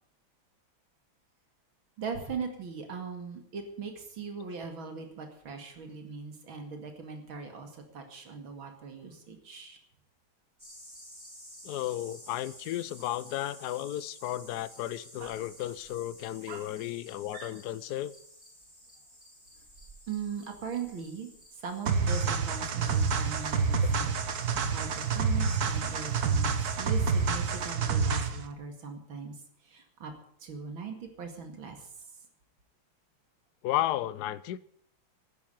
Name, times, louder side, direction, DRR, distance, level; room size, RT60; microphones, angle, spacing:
voice 1, 2.0-9.8 15.2-15.3 16.5-16.7 17.3-17.5 20.1-24.1 24.7-30.1 30.4-31.9, right 5 dB, 80° right, 3.0 m, -40 dB
sound 1, 10.6-27.7, equal, 10° right, 5.5 m, -53 dB
voice 2, 11.6-18.1 33.6-34.6, left 14 dB, 65° left, 1.1 m, -33 dB
sound 2, 21.9-28.5, right 5 dB, 55° right, 1.6 m, -28 dB
12.0 x 10.0 x 9.0 m
omnidirectional pair, 2.2 m